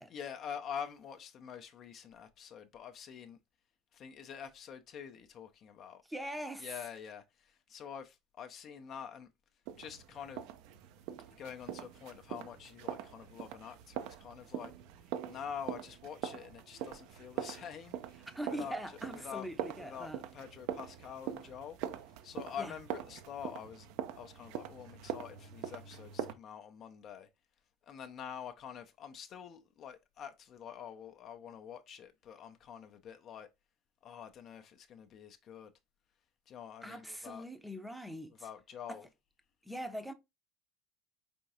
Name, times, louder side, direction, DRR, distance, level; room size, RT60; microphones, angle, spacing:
voice 1, 0.1-3.4 3.9-6.0 6.6-9.3 9.8-10.5 11.4-14.7 15.2-19.5 19.8-21.8 22.2-23.9 24.1-27.3 27.8-33.5 34.0-35.7 36.5-37.5 38.3-39.1, left 8 dB, 40° left, 0.5 m, -46 dB
voice 2, 6.1-6.7 18.3-20.2 22.6-22.7 36.8-38.5 38.9-39.0 39.6-40.1, equal, 5° right, 0.6 m, -42 dB
sound 1, 9.7-26.3, right 10 dB, 55° right, 0.4 m, -43 dB
4.5 x 3.4 x 2.7 m
figure-of-eight pair, 70°, 0 cm